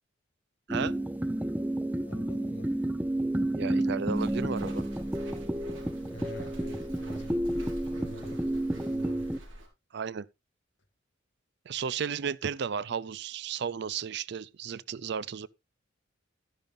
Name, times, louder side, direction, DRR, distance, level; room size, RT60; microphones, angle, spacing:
sound 1, 0.7-9.4, right 1 dB, 10° right, 0.7 m, -31 dB
voice 1, 2.0-2.8 6.1-7.4 7.9-9.3, right 1 dB, 65° left, 2.0 m, -46 dB
voice 2, 3.5-4.9 9.9-10.3 11.7-15.5, right 6 dB, 60° right, 0.4 m, -34 dB
Walk footsteps, 4.2-9.7, right 1 dB, 80° right, 3.9 m, -46 dB
12.0 x 10.5 x 2.5 m
head